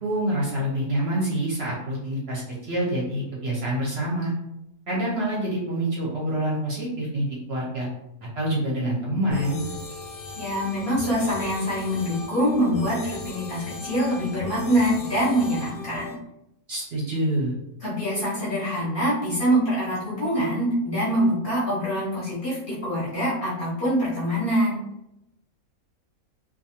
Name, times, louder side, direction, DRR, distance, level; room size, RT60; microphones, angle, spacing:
voice 1, 0.0-4.3 4.9-7.9 8.4-9.6 16.7-17.5, right 1 dB, 60° right, -5 dB, 0.7 m, -26 dB
sound 1, 9.3-16.2, left 2 dB, 90° left, 1.1 m, -37 dB
voice 2, 10.4-16.2 17.8-24.8, equal, 50° left, -7 dB, 0.7 m, -24 dB
2.5 x 2.3 x 2.7 m, 0.84 s
omnidirectional pair, 1.5 m